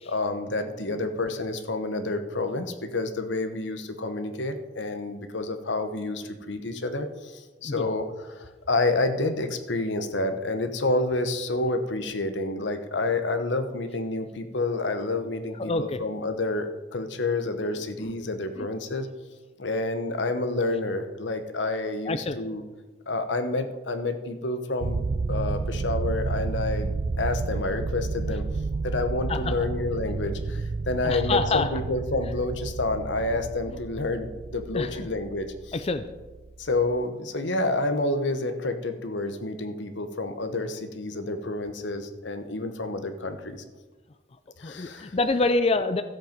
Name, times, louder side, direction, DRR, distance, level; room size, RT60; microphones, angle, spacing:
voice 1, 0.0-19.1 19.6-22.6 23.1-25.0 25.3-26.9 27.2-28.4 28.8-35.7 36.6-43.6 44.6-45.1, left 2 dB, 85° left, 8 dB, 1.1 m, -29 dB
voice 2, 15.6-16.0 18.0-18.1 18.6-18.7 22.1-22.4 29.3-29.5 31.0-31.7 34.7-35.1 35.7-36.0 44.6-46.0, left 3 dB, 35° left, 10 dB, 0.5 m, -26 dB
sound 1, 24.8-37.0, right 4 dB, 45° right, 0.3 m, -31 dB
14.0 x 7.8 x 5.2 m, 1.2 s
head